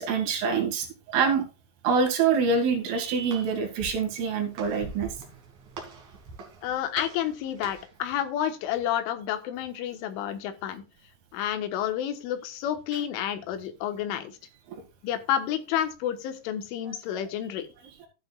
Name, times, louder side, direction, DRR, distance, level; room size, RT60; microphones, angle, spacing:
voice 1, 0.0-1.4 1.8-5.1 16.9-17.0, right 5 dB, 80° right, 3 dB, 4.6 m, -25 dB
Walk footsteps, 2.7-8.0, right 4 dB, 45° right, 3.3 m, -44 dB
voice 2, 6.6-10.8 11.3-14.3 15.0-17.7, left 10 dB, 75° left, 8 dB, 3.6 m, -30 dB
13.0 x 10.0 x 2.4 m, 0.30 s
omnidirectional pair, 5.8 m